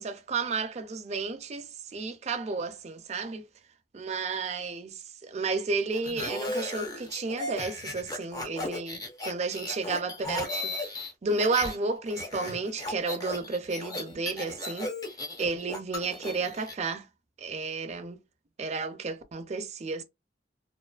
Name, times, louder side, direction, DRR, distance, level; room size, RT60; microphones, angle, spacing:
voice 1, 0.0-3.4 3.9-10.9 11.2-14.9 15.4-17.1 17.4-18.2 18.6-20.0, right 3 dB, 35° right, 0.4 m, -32 dB
sound 1, 5.9-11.8 12.0-16.7, left 2 dB, 20° left, 0.5 m, -36 dB
2.4 x 2.3 x 2.2 m
head